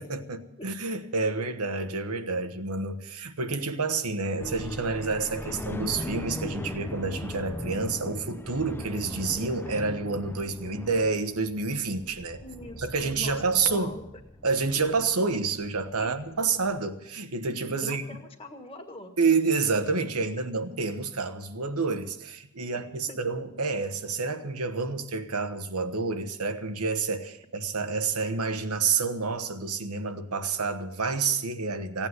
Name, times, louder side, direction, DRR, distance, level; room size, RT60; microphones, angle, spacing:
voice 1, 0.0-12.4 12.8-14.0 14.4-18.0 19.2-32.1, right 4 dB, 90° right, 1.3 m, -29 dB
sound 1, 4.4-16.9, left 1 dB, 10° left, 0.6 m, -40 dB
voice 2, 12.4-14.0 16.0-16.5 17.8-19.1 23.1-23.2, left 1 dB, 25° left, 1.7 m, -43 dB
16.5 x 8.8 x 9.5 m
head